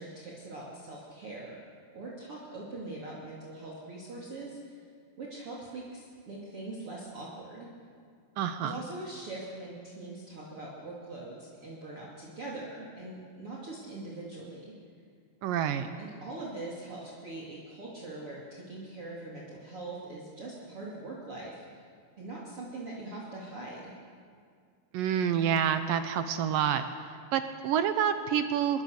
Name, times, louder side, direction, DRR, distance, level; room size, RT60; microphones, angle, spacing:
voice 1, 0.0-1.6 1.9-4.9 5.2-7.7 8.6-14.7 16.0-21.8 22.2-23.9, right 2 dB, 35° right, -4 dB, 3.3 m, -42 dB
voice 2, 8.4-8.8 15.4-15.9 24.9-26.8 27.3-28.8, right 9 dB, 75° right, 9 dB, 2.2 m, -28 dB
26.5 x 21.5 x 6.7 m, 2.2 s
omnidirectional pair, 4.7 m